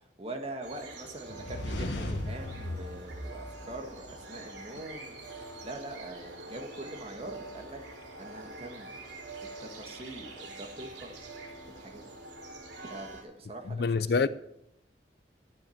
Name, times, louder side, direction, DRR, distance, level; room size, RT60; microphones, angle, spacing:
voice 1, 0.2-5.1 5.6-7.8 8.2-8.9 9.6-11.1 11.7-12.1 12.8-14.3, right 1 dB, 35° right, 1.7 m, -43 dB
sound 1, 0.6-13.2, right 2 dB, 70° right, 4.0 m, -45 dB
sound 2, 1.3-4.3, left 1 dB, 75° left, 1.6 m, -37 dB
voice 2, 13.7-14.3, left 4 dB, 60° left, 0.5 m, -26 dB
13.0 x 8.7 x 7.2 m
head